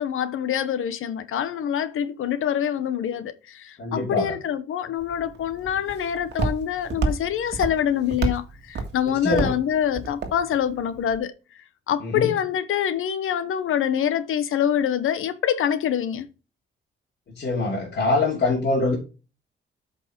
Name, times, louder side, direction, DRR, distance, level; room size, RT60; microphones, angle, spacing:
voice 1, 0.0-11.3 11.9-16.3, left 9 dB, 80° left, 1.0 m, -25 dB
voice 2, 3.8-4.3 9.0-9.5 12.0-12.3 17.4-19.0, left 2 dB, 55° left, 2.8 m, -24 dB
Walk footsteps, 5.0-11.2, right 3 dB, 55° right, 1.8 m, -31 dB
8.3 x 5.3 x 4.5 m
cardioid pair, 130°, 21 cm